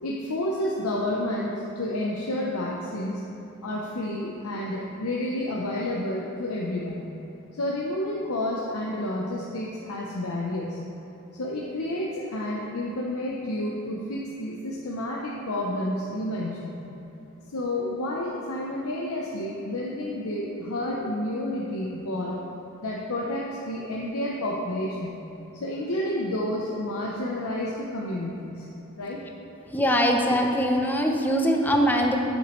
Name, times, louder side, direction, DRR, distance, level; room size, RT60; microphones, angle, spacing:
voice 1, 0.0-3.2 3.6-7.0 7.5-10.8 11.4-16.8 17.5-22.4 22.8-25.2 25.5-28.7 29.0-29.2, left 1 dB, 80° left, -4 dB, 0.8 m, -30 dB
voice 2, 29.7-32.2, equal, 10° left, 2 dB, 0.6 m, -22 dB
8.1 x 8.0 x 3.1 m, 3.0 s
head